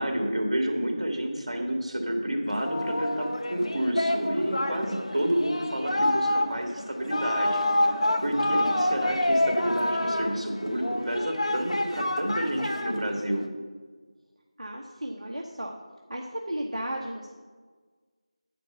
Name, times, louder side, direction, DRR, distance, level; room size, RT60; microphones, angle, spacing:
voice 1, 0.0-7.6 7.9-13.4, right 1 dB, 70° right, 1 dB, 2.2 m, -29 dB
Singing, 2.5-13.5, left 1 dB, 65° left, 1.0 m, -28 dB
voice 2, 14.6-15.7 16.1-17.3, right 1 dB, 85° right, -1 dB, 1.1 m, -34 dB
9.2 x 5.2 x 7.1 m, 1.5 s
figure-of-eight pair, 170°, 4 cm